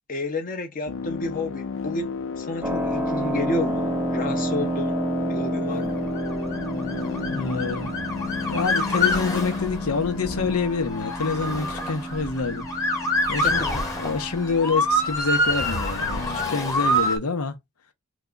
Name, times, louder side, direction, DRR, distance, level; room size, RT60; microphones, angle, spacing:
voice 1, 0.1-2.1 2.4-4.9 5.2-6.0 13.4-13.5, left 2 dB, 40° left, 0.9 m, -30 dB
sound 1, 0.9-10.6, left 5 dB, 60° left, 0.5 m, -33 dB
Keyboard (musical), 2.6-15.1, right 1 dB, 10° right, 0.4 m, -31 dB
Motor vehicle (road) / Siren, 6.0-17.2, left 1 dB, 15° left, 1.0 m, -27 dB
voice 2, 7.3-7.9 8.5-12.9 13.3-13.6 14.0-16.2 16.5-17.6, left 4 dB, 85° left, 0.9 m, -27 dB
2.9 x 2.3 x 3.8 m
head